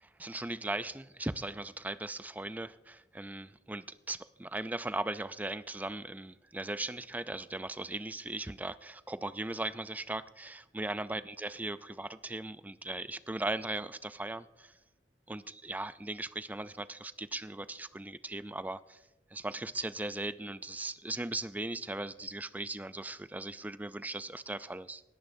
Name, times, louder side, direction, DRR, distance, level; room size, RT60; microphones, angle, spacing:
voice 1, 0.2-14.7 15.3-19.0 19.3-25.0, right 2 dB, 10° right, 14 dB, 0.3 m, -38 dB
19.5 x 14.5 x 2.6 m, 1.0 s
head